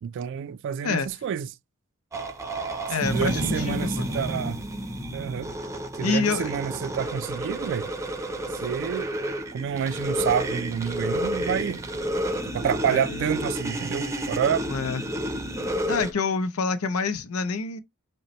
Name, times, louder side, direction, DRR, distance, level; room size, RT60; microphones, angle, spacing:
voice 1, 0.0-1.5 3.0-4.6 5.1-5.5 6.0-7.9 8.6-9.1 9.5-11.8 12.5-14.7, right 8 dB, 60° right, 0.3 m, -28 dB
voice 2, 0.8-1.2 2.9-4.2 6.0-6.5 12.8-13.3 14.6-15.0 15.9-17.8, left 4 dB, 80° left, 0.6 m, -27 dB
sound 1, 2.1-16.1, right 1 dB, 15° right, 0.6 m, -31 dB
5.2 x 2.1 x 3.0 m
head